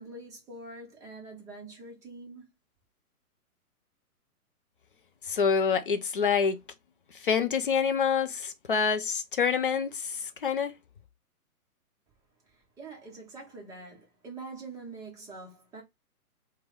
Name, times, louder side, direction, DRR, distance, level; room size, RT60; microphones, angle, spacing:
voice 1, 0.0-2.5 12.5-15.8, right 3 dB, 5° right, 0.7 m, -45 dB
voice 2, 5.3-6.6 7.2-10.7, left 6 dB, 40° left, 0.4 m, -26 dB
3.3 x 2.2 x 3.4 m
figure-of-eight pair, 125°, 45 cm